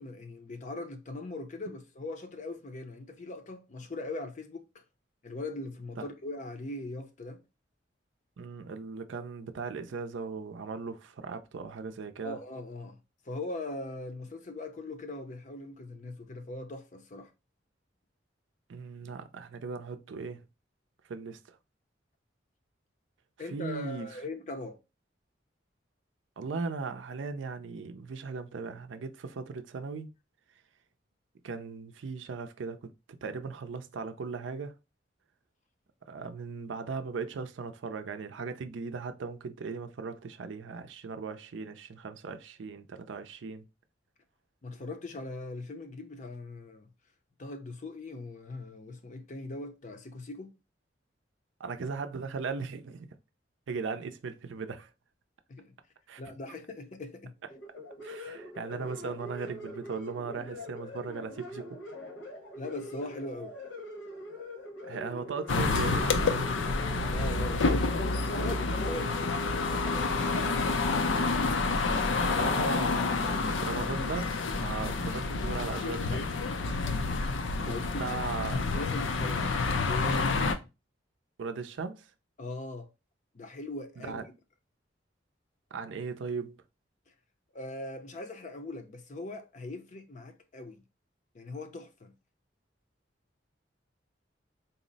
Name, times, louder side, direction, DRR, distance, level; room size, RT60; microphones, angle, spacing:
voice 1, 0.0-4.7 5.2-7.4 12.2-13.0 13.3-17.3 23.4-24.8 44.6-46.9 47.4-50.5 55.5-55.7 56.2-57.3 62.6-63.6 67.1-68.0 68.2-70.9 77.6-78.2 78.7-80.6 82.4-82.9 83.3-84.3 87.5-90.8 91.3-92.1, left 2 dB, 40° left, 0.5 m, -40 dB
voice 2, 8.4-12.4 18.7-20.4 21.1-21.6 23.5-24.1 26.4-30.1 31.4-32.9 33.2-34.7 36.1-43.7 51.6-53.1 53.7-54.9 56.1-56.2 58.0-61.8 64.8-66.5 72.3-76.2 77.6-78.6 81.4-82.1 84.0-84.2 85.7-86.6, right 4 dB, 80° right, 0.4 m, -38 dB
sound 1, 57.5-71.2, equal, 70° left, 1.1 m, -43 dB
sound 2, 65.5-80.5, left 3 dB, 85° left, 0.5 m, -29 dB
4.1 x 2.0 x 3.8 m
head